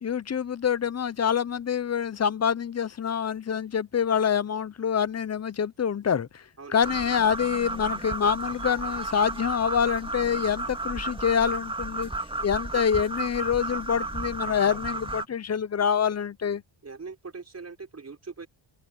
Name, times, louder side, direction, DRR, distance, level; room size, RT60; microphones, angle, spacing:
voice 1, 0.0-6.4 6.7-12.1 12.4-16.6, left 7 dB, 30° left, 0.9 m, -26 dB
sound 1, 6.8-15.2, right 2 dB, 10° right, 2.4 m, -33 dB
voice 2, 16.8-18.5, right 4 dB, 30° right, 5.5 m, -41 dB
open air
cardioid pair, 80°, 48 cm